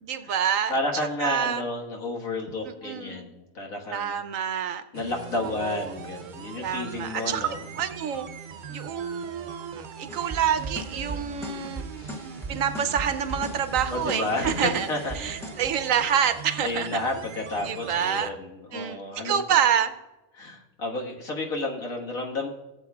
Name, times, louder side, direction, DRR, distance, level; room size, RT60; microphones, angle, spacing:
voice 1, 0.0-0.7 1.2-1.6 2.8-3.2 3.9-4.8 5.4-5.9 6.6-8.3 8.7-11.8 12.5-14.9 15.1-17.0 17.6-18.4 18.7-19.0 19.2-19.9, right 8 dB, 75° right, 10 dB, 1.0 m, -27 dB
voice 2, 0.7-4.2 4.9-7.6 11.9-12.3 13.9-15.5 16.6-19.4 20.3-22.5, left 2 dB, 75° left, 0 dB, 2.0 m, -31 dB
sound 1, 4.9-18.3, right 6 dB, 55° right, 0.5 m, -41 dB
sound 2, 10.1-15.7, right 2 dB, ahead, 1.2 m, -38 dB
16.0 x 7.8 x 2.3 m, 1.1 s
omnidirectional pair, 1.5 m